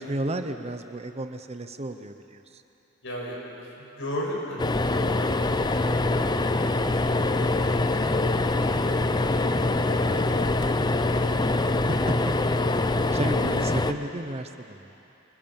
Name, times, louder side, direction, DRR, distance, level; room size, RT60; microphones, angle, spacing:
voice 1, 0.0-2.6 13.1-14.9, right 1 dB, 30° right, 8 dB, 0.8 m, -33 dB
voice 2, 3.0-7.2 9.8-11.6, equal, 65° left, -3 dB, 6.4 m, -37 dB
sound 1, 4.6-13.9, left 2 dB, 20° left, 0.6 m, -24 dB
26.0 x 20.5 x 7.2 m, 2.9 s
head